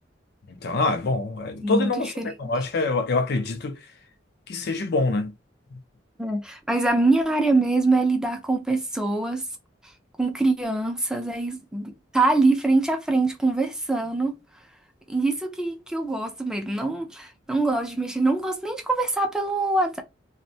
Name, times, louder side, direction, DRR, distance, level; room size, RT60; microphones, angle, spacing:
voice 1, 0.6-3.8 4.5-5.3, left 3 dB, 60° left, 0.4 m, -25 dB
voice 2, 1.6-2.5 6.2-9.4 10.2-14.4 15.1-20.0, right 2 dB, 5° right, 0.4 m, -24 dB
2.5 x 2.1 x 2.7 m
head